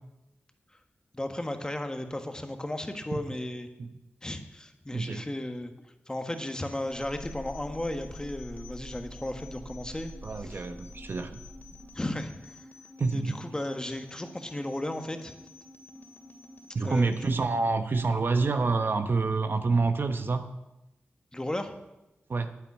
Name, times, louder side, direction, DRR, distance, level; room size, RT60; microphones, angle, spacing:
voice 1, 1.1-3.7 4.2-5.7 6.1-10.1 10.4-10.6 11.9-12.7 13.1-15.3 16.8-17.1 21.3-21.8, left 1 dB, 15° left, 6 dB, 1.4 m, -35 dB
voice 2, 4.9-5.2 10.2-11.4 13.0-13.4 16.7-20.4 22.3-22.5, right 3 dB, 55° right, 8 dB, 1.0 m, -27 dB
sound 1, 6.3-17.3, left 2 dB, 45° left, 2.6 m, -51 dB
sound 2, 6.9-12.5, equal, 75° right, 4.9 m, -46 dB
9.6 x 9.3 x 8.4 m, 0.96 s
cardioid pair, 70°, 4 cm